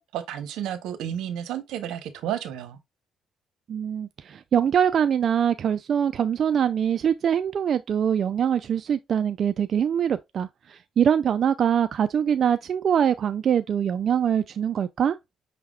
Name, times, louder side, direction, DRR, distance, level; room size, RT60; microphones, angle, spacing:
voice 1, 0.0-2.8, right 10 dB, 90° right, 0.8 m, -32 dB
voice 2, 3.7-15.2, right 8 dB, 55° right, 0.3 m, -23 dB
5.6 x 3.4 x 2.3 m
cardioid pair, 90°, 0 cm